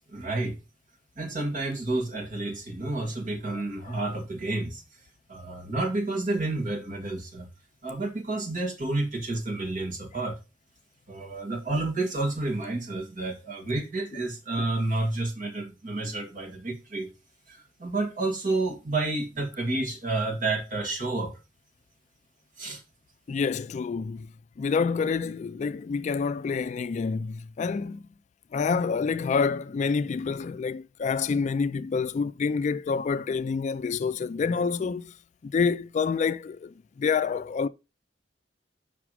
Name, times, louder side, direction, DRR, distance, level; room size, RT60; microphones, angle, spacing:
voice 1, 0.1-0.6 1.2-4.8 5.3-7.5 7.8-10.4 11.1-17.1 17.5-21.3 22.6-22.8, right 2 dB, 45° right, 2.2 m, -30 dB
voice 2, 23.3-24.3 24.6-28.0 28.5-35.1 35.4-37.7, left 5 dB, 40° left, 0.3 m, -27 dB
6.1 x 5.9 x 4.8 m
head